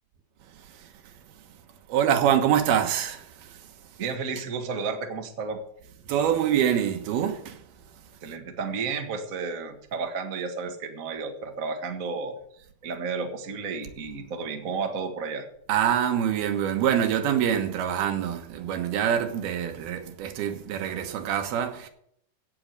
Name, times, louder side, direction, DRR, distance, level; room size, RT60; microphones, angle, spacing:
voice 1, 0.5-1.5 1.9-4.1 6.1-7.6 8.0-8.1 15.7-21.9, right 9 dB, 80° right, 3.2 m, -26 dB
voice 2, 4.0-5.6 8.2-15.5, right 4 dB, 45° right, 1.0 m, -32 dB
17.0 x 6.3 x 6.6 m
omnidirectional pair, 4.4 m